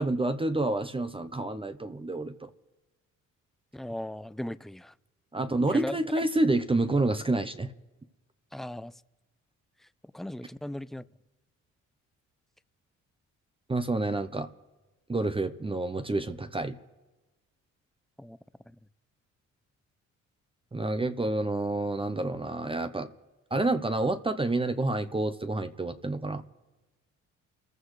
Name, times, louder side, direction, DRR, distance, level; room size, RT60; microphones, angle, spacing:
voice 1, 0.0-2.5 5.3-7.7 13.7-14.5 15.1-16.8 20.7-23.1 23.5-26.4, right 2 dB, 20° right, 0.8 m, -28 dB
voice 2, 3.7-4.9 5.7-6.0 8.5-8.9 10.1-11.0 18.2-18.4 18.7-18.8, left 1 dB, ahead, 0.4 m, -37 dB
29.0 x 14.5 x 3.3 m
cardioid pair, 90°, 30 cm